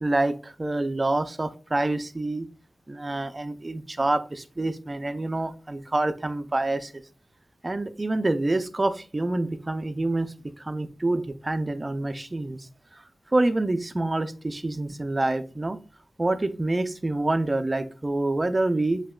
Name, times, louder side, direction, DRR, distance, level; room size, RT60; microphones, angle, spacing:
voice 1, 0.0-2.5 2.9-6.9 7.6-10.3 10.7-12.6 13.3-15.8 16.2-19.0, right 2 dB, 30° right, 9 dB, 0.4 m, -27 dB
7.3 x 2.8 x 2.3 m, 0.36 s
wide cardioid pair, 115°, 0 cm